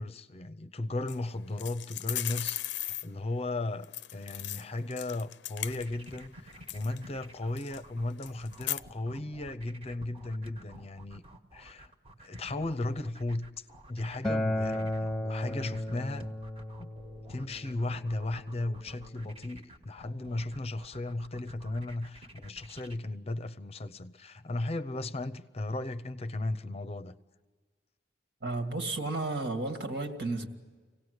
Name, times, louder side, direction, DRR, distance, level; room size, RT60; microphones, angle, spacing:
voice 1, 0.0-11.2 11.5-11.9 12.2-16.3 16.8-16.9 17.3-27.2, left 2 dB, 35° left, 0.7 m, -36 dB
sound 1, 1.1-1.2 1.6-3.1 3.8-6.2 6.5-7.0 7.6-7.8 8.2-8.8, left 14 dB, 70° left, 0.6 m, -37 dB
sound 2, 5.5-23.0, right 1 dB, 35° right, 1.5 m, -51 dB
Acoustic guitar, 14.2-19.4, left 1 dB, 5° left, 1.1 m, -35 dB
voice 2, 28.4-30.5, right 2 dB, 65° right, 2.1 m, -33 dB
25.5 x 17.5 x 8.0 m
head